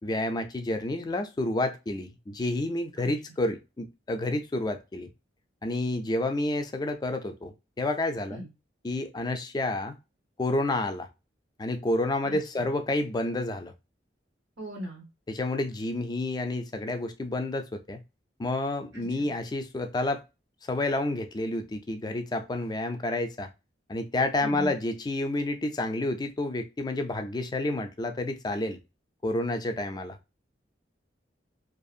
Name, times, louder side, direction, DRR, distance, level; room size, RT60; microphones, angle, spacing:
voice 1, 0.0-5.1 5.6-8.4 8.8-10.0 10.4-11.1 11.6-13.7 15.3-18.0 18.4-20.2 20.7-23.5 23.9-28.8 29.2-30.2, left 2 dB, 20° left, 0.3 m, -29 dB
voice 2, 12.2-12.6 14.6-15.1 18.9-19.3 24.4-24.7, equal, 90° right, 0.8 m, -39 dB
2.6 x 2.5 x 2.4 m
head